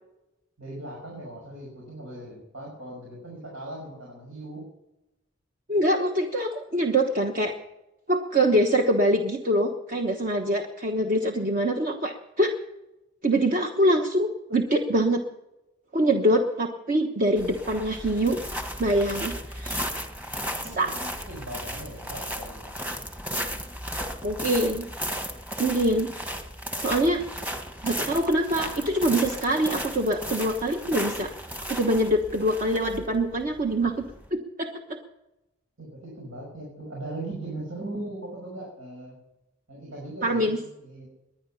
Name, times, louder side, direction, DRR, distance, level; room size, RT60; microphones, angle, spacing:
voice 1, 0.6-4.7 20.6-22.7 35.8-39.2 39.7-41.1, right 1 dB, 85° right, -2 dB, 6.1 m, -39 dB
voice 2, 5.7-7.6 8.1-12.5 13.2-15.2 15.9-18.4 18.8-19.9 20.8-20.9 24.2-24.8 25.6-26.1 26.8-27.2 27.8-31.3 31.7-34.0 34.3-35.0 40.2-40.6, right 1 dB, 45° right, 3 dB, 1.2 m, -24 dB
sound 1, 17.4-34.3, equal, 10° right, 1.4 m, -35 dB
20.5 x 10.5 x 5.6 m, 0.95 s
head